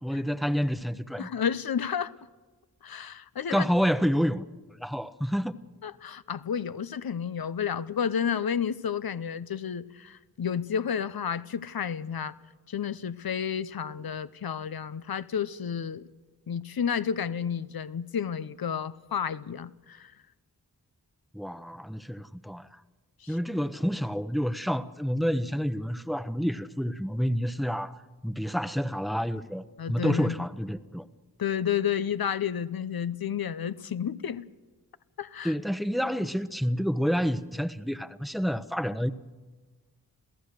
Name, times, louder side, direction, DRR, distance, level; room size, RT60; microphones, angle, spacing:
voice 1, 0.0-1.3 3.5-4.4 4.8-5.5 21.3-22.8 23.3-31.1 35.4-39.1, equal, ahead, 0.9 m, -29 dB
voice 2, 1.2-2.1 2.8-3.7 5.8-12.4 12.7-16.1 16.5-20.1 23.2-23.4 29.8-30.4 31.4-34.4 35.2-35.5, left 8 dB, 70° left, 0.8 m, -31 dB
28.0 x 16.0 x 6.6 m
cardioid pair, 45°, 37 cm